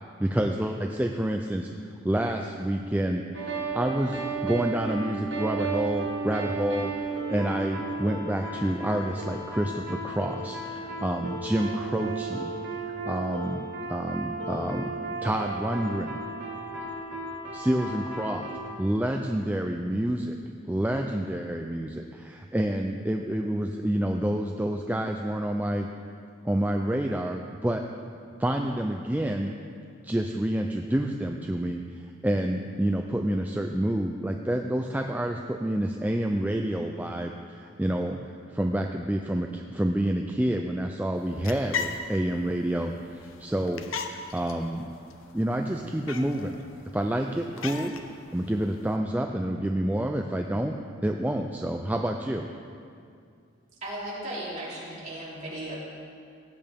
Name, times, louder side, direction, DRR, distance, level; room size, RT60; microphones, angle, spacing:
voice 1, 0.2-1.7 2.0-12.8 13.1-14.9 15.2-16.2 17.5-18.5 18.8-20.4 20.7-25.9 26.4-27.8 28.4-29.5 30.0-31.8 32.2-44.9 45.3-46.5 46.9-47.9 48.3-50.7 51.0-52.5, right 1 dB, 10° right, 3 dB, 0.3 m, -28 dB
sound 1, 3.3-18.6, right 3 dB, 55° right, 1.6 m, -34 dB
sound 2, 41.1-49.0, left 5 dB, 80° left, 0.8 m, -39 dB
voice 2, 53.8-55.8, right 1 dB, 35° right, -8 dB, 3.2 m, -36 dB
18.0 x 8.9 x 3.5 m, 2.4 s
head